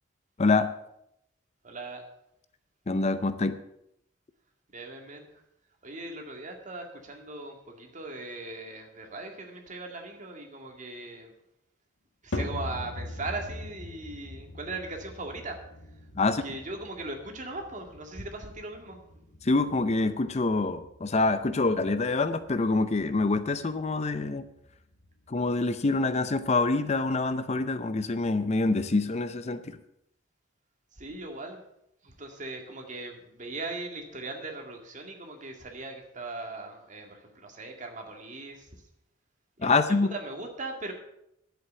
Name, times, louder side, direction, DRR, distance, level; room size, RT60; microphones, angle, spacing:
voice 1, 0.4-0.7 2.9-3.6 16.2-16.4 19.4-24.4 25.3-29.8 39.6-40.1, left 3 dB, 35° left, 12 dB, 0.6 m, -26 dB
voice 2, 1.6-2.0 4.7-5.3 5.8-11.3 12.2-15.6 16.2-19.0 30.9-31.6 32.0-38.7 39.6-39.8 40.1-40.9, right 2 dB, 40° right, 3 dB, 2.1 m, -39 dB
sound 1, 12.3-28.8, left 1 dB, 85° left, 1.7 m, -43 dB
11.0 x 7.9 x 6.8 m, 0.79 s
head